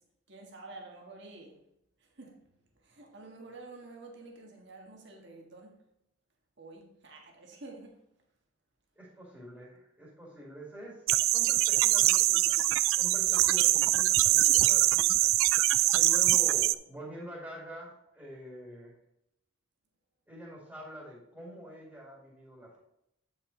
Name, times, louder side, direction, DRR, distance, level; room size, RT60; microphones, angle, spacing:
voice 1, 0.3-1.6 2.0-2.5 2.8-5.8 6.6-8.0 13.2-14.0, right 3 dB, 55° right, 1.7 m, -49 dB
voice 2, 9.0-11.0 11.3-12.6 13.0-15.3 15.9-19.0 20.3-22.8, equal, 5° right, 2.1 m, -46 dB
sound 1, 11.1-16.7, right 15 dB, 70° right, 0.3 m, -24 dB
9.3 x 5.6 x 3.9 m
head